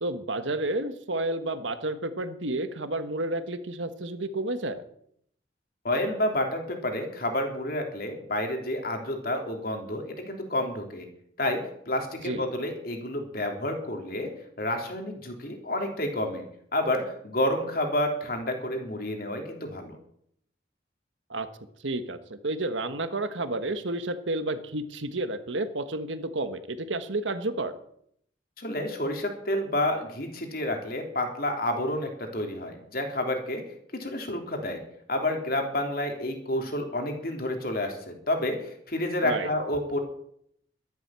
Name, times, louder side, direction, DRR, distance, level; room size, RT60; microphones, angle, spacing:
voice 1, 0.0-4.8 12.2-12.4 21.3-21.5 21.8-27.7 39.2-39.5, right 2 dB, 90° right, 10 dB, 1.4 m, -31 dB
voice 2, 5.8-11.1 11.4-11.6 11.9-14.3 14.6-16.4 16.7-20.0 28.6-33.6 33.9-34.8 35.1-40.0, left 1 dB, 50° left, 3 dB, 3.2 m, -29 dB
13.0 x 11.5 x 7.6 m, 0.69 s
head